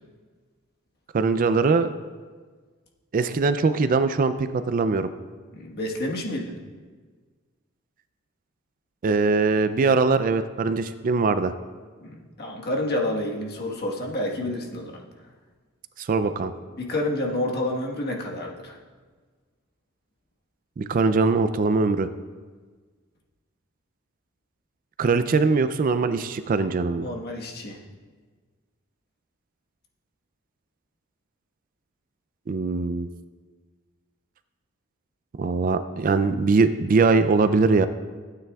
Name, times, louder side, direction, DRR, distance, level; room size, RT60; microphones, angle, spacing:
voice 1, 1.1-1.9 3.1-5.1 9.0-11.5 16.0-16.5 20.8-22.1 25.0-27.1 32.5-33.1 35.4-37.9, right 4 dB, 40° right, 12 dB, 0.4 m, -21 dB
voice 2, 5.5-6.6 12.0-15.0 16.8-18.8 27.0-27.8, left 1 dB, 50° left, -1 dB, 1.3 m, -29 dB
15.5 x 9.1 x 2.3 m, 1.5 s
head